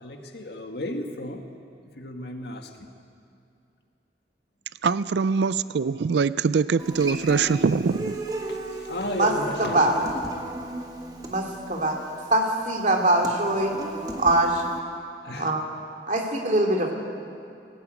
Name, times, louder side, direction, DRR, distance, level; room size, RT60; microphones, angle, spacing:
voice 1, 0.0-1.4 1.9-2.9 8.5-9.9 10.3-10.6 15.2-15.5, left 1 dB, 70° left, 4 dB, 1.8 m, -34 dB
voice 2, 4.8-8.2, right 5 dB, 75° right, 16 dB, 0.4 m, -23 dB
Human voice / Acoustic guitar, 6.8-14.8, right 1 dB, 20° right, 1.6 m, -35 dB
voice 3, 9.6-10.0 11.3-12.0 12.3-13.7 14.2-14.6 15.3-15.6 16.1-16.9, right 2 dB, 45° right, 2 dB, 2.6 m, -22 dB
18.0 x 18.0 x 9.1 m, 2.5 s
head